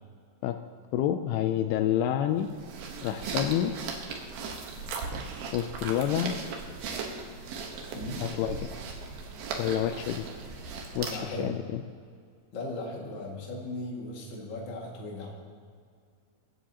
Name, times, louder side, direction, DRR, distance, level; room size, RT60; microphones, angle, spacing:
voice 1, 0.9-2.5 3.0-3.7 5.5-6.4 8.2-8.8 9.6-10.3 11.0-11.8, left 11 dB, 85° left, 7 dB, 2.5 m, -28 dB
sound 1, 2.4-11.4, right 4 dB, 70° right, 2.9 m, -37 dB
voice 2, 7.9-8.3 11.1-11.6 12.5-15.3, left 2 dB, 40° left, -2 dB, 2.2 m, -37 dB
23.0 x 10.0 x 2.9 m, 2.2 s
omnidirectional pair, 4.4 m